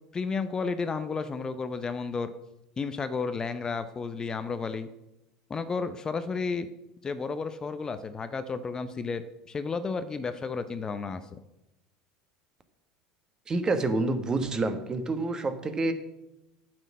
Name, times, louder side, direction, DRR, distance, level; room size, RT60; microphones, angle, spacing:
voice 1, 0.1-2.3 2.8-4.9 5.5-6.7 7.0-11.4, left 4 dB, 25° left, 11 dB, 0.7 m, -32 dB
voice 2, 13.5-15.9, right 3 dB, 25° right, 9 dB, 1.4 m, -28 dB
9.0 x 6.3 x 7.4 m, 0.91 s
hypercardioid pair, 80°, 3 cm